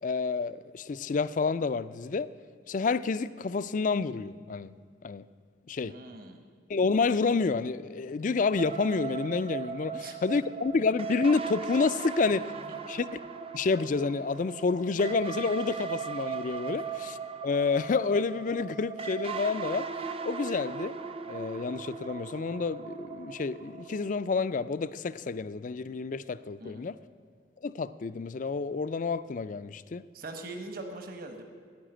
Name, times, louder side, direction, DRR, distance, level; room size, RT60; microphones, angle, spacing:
voice 1, 0.0-2.3 2.7-4.7 5.0-5.3 5.7-5.9 6.7-12.5 12.9-13.1 13.5-17.2 17.4-19.9 20.2-20.9 21.3-27.0 27.6-30.0, left 4 dB, 40° left, 0.4 m, -29 dB
voice 2, 5.8-6.4 9.9-10.2 26.6-26.9 30.1-31.4, right 2 dB, 50° right, 1.2 m, -41 dB
sound 1, 8.6-24.1, right 6 dB, 30° right, 0.5 m, -38 dB
11.5 x 9.9 x 8.9 m
head